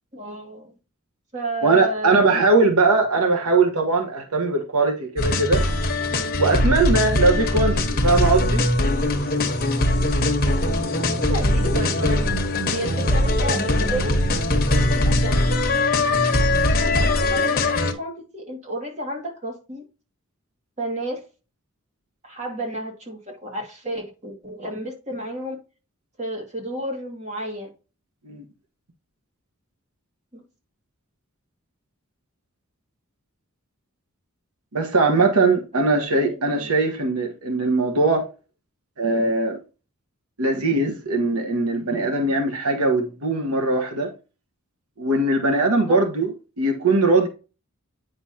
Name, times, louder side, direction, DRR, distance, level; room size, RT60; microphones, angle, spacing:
voice 1, 0.1-0.7 1.3-2.4 10.6-10.8 11.0-12.2 12.7-14.2 15.0-15.4 16.7-19.8 20.8-21.2 22.2-25.6 26.2-27.7 30.3-30.4 35.7-36.8 45.9-46.0, right 1 dB, 30° right, 2.2 m, -32 dB
voice 2, 1.6-5.6 6.4-8.7 28.2-28.4 34.7-38.2 39.0-39.6 40.4-44.1 45.0-46.3 46.6-47.3, right 3 dB, 85° right, 1.3 m, -20 dB
sound 1, 5.2-17.9, left 1 dB, 40° left, 1.2 m, -21 dB
8.9 x 5.5 x 2.8 m
head